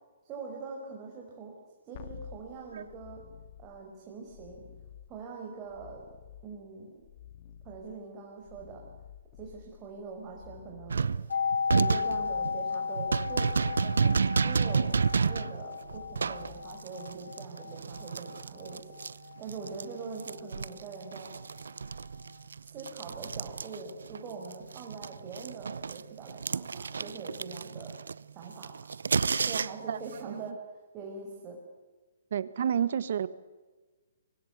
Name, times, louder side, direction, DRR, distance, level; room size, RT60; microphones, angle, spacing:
voice 1, 0.2-1.5 1.8-3.2 3.6-4.6 5.1-6.0 6.4-7.0 7.6-8.8 9.4-11.1 11.7-14.1 14.4-18.8 19.4-21.3 22.7-27.9 28.3-28.7 29.4-30.5 30.9-31.6, right 4 dB, 25° right, -1 dB, 5.3 m, -43 dB
sound 1, 1.9-17.2 20.4-20.5, left 10 dB, 45° left, 1.9 m, -52 dB
sound 2, 10.9-19.9 20.2-24.2 24.4-30.0, right 5 dB, 85° right, 0.7 m, -31 dB
sound 3, 11.3-21.0 21.3-21.4, left 5 dB, 80° left, 1.5 m, -35 dB
voice 2, 32.3-33.3, right 8 dB, 65° right, 15 dB, 1.4 m, -29 dB
24.5 x 20.5 x 8.2 m, 1.2 s
hypercardioid pair, 145°, 0 cm